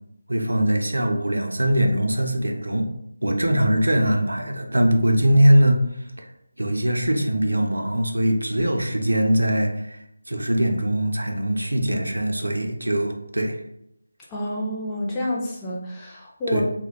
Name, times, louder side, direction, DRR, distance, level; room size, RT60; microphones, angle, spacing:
voice 1, 0.3-2.9 3.2-5.8 6.2-6.3 6.6-10.0 10.3-13.6 16.5-16.6, right 1 dB, 75° right, 3 dB, 0.4 m, -21 dB
voice 2, 14.3-16.6, left 1 dB, 10° left, -6 dB, 0.3 m, -28 dB
2.1 x 2.0 x 2.9 m, 0.78 s
figure-of-eight pair, 160°, 0 cm